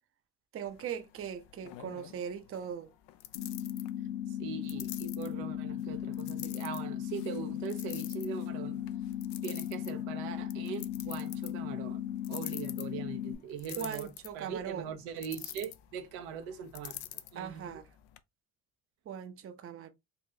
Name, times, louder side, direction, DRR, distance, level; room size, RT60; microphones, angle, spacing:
voice 1, 0.5-2.9 13.8-14.9 17.4-17.8 19.1-19.9, right 8 dB, 30° right, 0.6 m, -39 dB
sound 1, 0.7-18.2, left 14 dB, 60° left, 0.5 m, -49 dB
sound 2, 3.3-13.3, left 11 dB, 85° left, 1.1 m, -37 dB
voice 2, 4.4-8.9 9.4-12.0 12.3-17.0 17.3-17.8, right 7 dB, 70° right, 0.7 m, -41 dB
3.9 x 2.4 x 2.7 m
hypercardioid pair, 55°, 47 cm